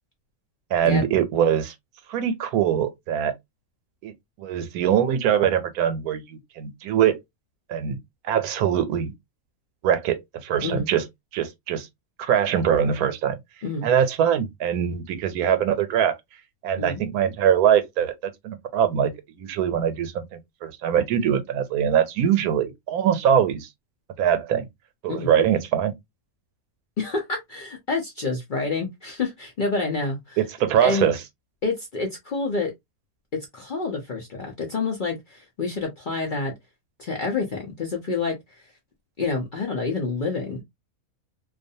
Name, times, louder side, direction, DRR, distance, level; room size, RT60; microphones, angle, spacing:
voice 1, 0.7-1.7 2.1-3.3 4.0-4.1 4.4-7.2 7.7-8.0 8.2-9.1 9.8-11.1 11.3-11.9 12.2-13.4 13.8-16.2 16.6-18.1 18.4-19.1 19.4-23.7 24.2-24.7 25.0-25.9 30.4-31.2, right 9 dB, 80° right, 1.1 m, -22 dB
voice 2, 27.0-30.4 30.8-31.1 31.6-32.7 33.5-36.5 37.0-38.7 39.2-40.6, left 3 dB, 55° left, 0.5 m, -28 dB
2.5 x 2.3 x 2.6 m
omnidirectional pair, 1.5 m